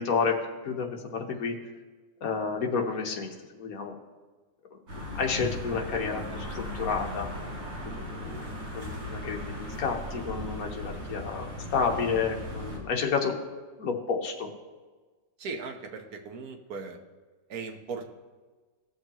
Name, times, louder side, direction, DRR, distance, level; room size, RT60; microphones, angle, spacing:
voice 1, 0.0-1.6 2.2-3.9 4.9-7.3 7.8-13.4 13.8-14.5, left 5 dB, 55° left, 2 dB, 1.4 m, -30 dB
sound 1, 4.9-12.8, left 1 dB, 85° right, 3.4 m, -37 dB
voice 2, 15.4-17.0 17.5-18.1, right 4 dB, 55° right, 3 dB, 1.4 m, -38 dB
17.5 x 6.5 x 3.0 m, 1.3 s
omnidirectional pair, 2.0 m